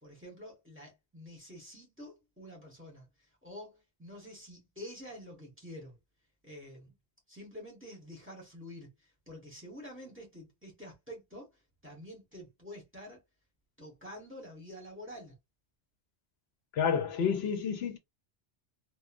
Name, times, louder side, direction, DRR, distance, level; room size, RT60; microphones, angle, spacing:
voice 1, 0.0-3.0 3.4-6.0 6.4-6.9 7.3-8.9 9.3-11.5 11.8-13.2 13.8-15.3, equal, 10° right, 1.1 m, -48 dB
voice 2, 16.7-18.0, left 7 dB, 80° left, 0.8 m, -29 dB
3.0 x 2.1 x 2.4 m
omnidirectional pair, 1.1 m